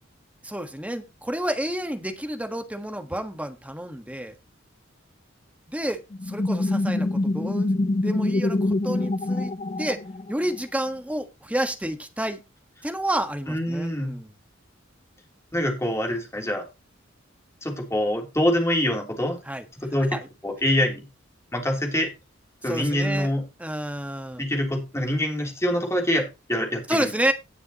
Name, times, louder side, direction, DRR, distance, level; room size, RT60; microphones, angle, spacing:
voice 1, 0.4-4.4 5.7-10.0 10.3-12.4 12.8-14.3 19.4-19.6 20.0-20.3 22.6-23.3 23.6-24.4 26.9-27.3, right 1 dB, 5° right, 6 dB, 1.4 m, -30 dB
sound 1, 6.1-10.6, left 2 dB, 30° left, 0.5 m, -25 dB
voice 2, 13.5-14.1 15.5-16.6 17.6-19.4 19.8-20.2 20.4-21.1 21.5-22.1 22.6-23.4 24.4-27.1, left 1 dB, 15° left, 1 dB, 3.3 m, -25 dB
18.0 x 6.9 x 3.0 m, 0.26 s
head